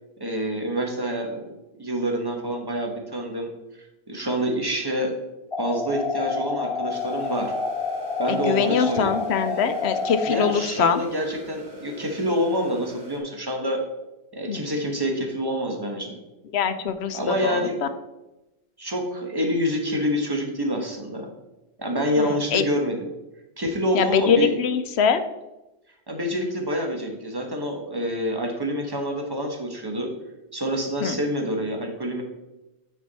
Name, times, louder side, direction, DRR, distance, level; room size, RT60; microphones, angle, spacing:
voice 1, 0.2-1.5 1.8-3.5 4.1-5.1 5.6-7.5 8.2-9.2 10.2-13.8 14.3-16.2 17.1-17.8 18.8-21.3 21.8-23.0 23.6-24.5 26.1-30.1 30.5-32.2, equal, 25° right, 2 dB, 1.2 m, -27 dB
sound 1, 5.5-10.5, left 4 dB, 30° left, 0.9 m, -29 dB
sound 2, 6.9-13.2, left 1 dB, 80° right, 1.7 m, -44 dB
voice 2, 8.3-11.0 14.5-14.6 16.5-17.9 22.2-22.6 23.9-25.2 31.0-31.2, left 6 dB, 85° left, 10 dB, 0.9 m, -23 dB
9.3 x 4.6 x 4.1 m, 0.98 s
omnidirectional pair, 1.1 m